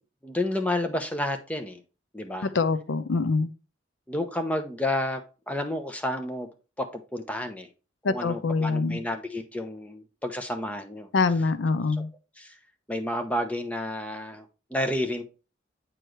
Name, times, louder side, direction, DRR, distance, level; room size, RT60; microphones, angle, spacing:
voice 1, 0.2-1.8 2.1-2.5 4.1-6.5 6.8-7.7 8.1-11.1 12.0-12.1 12.4-12.6 12.9-15.2, left 1 dB, 5° left, 0.8 m, -30 dB
voice 2, 2.4-3.5 8.0-9.0 11.1-12.1, left 4 dB, 70° left, 0.5 m, -25 dB
9.0 x 4.6 x 3.1 m
head